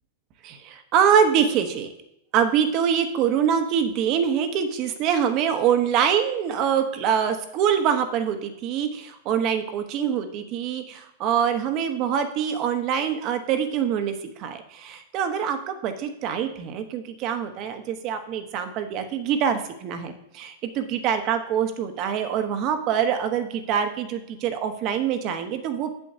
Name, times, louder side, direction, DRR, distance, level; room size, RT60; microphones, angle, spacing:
voice 1, 0.4-1.9 2.3-14.1 14.4-25.9, right 8 dB, 40° right, 8 dB, 1.0 m, -24 dB
8.0 x 7.6 x 2.8 m, 0.83 s
hypercardioid pair, 105°, 0 cm